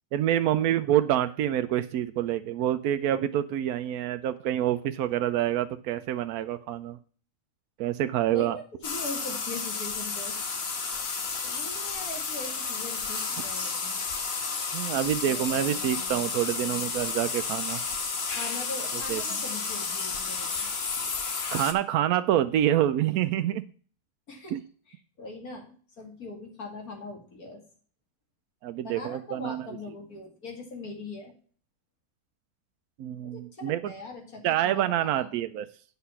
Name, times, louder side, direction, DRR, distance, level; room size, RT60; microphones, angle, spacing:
voice 1, 0.1-7.0 7.8-8.6 14.7-17.8 19.1-19.2 21.5-23.6 24.5-24.6 28.6-29.6 33.0-33.9 34.4-35.6, right 12 dB, 85° right, 10 dB, 1.1 m, -27 dB
voice 2, 8.3-10.4 10.7-10.8 11.4-14.0 15.2-17.2 18.3-20.7 24.3-27.6 28.8-31.3 33.2-35.3, left 2 dB, 80° left, 2 dB, 2.8 m, -41 dB
sound 1, 8.8-21.7, left 5 dB, 50° left, 1.3 m, -32 dB
8.2 x 5.8 x 5.6 m, 0.43 s
omnidirectional pair, 1.5 m